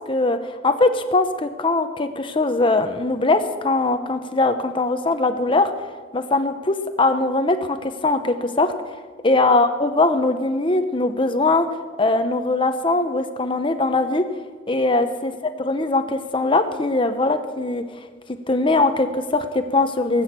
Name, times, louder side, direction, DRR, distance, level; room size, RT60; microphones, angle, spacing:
voice 1, 0.1-5.7 6.1-8.7 9.2-11.7 12.0-14.2 14.7-15.3 15.6-18.0 18.5-20.2, left 2 dB, 30° left, 7 dB, 0.8 m, -21 dB
19.0 x 8.7 x 7.5 m, 1.5 s
head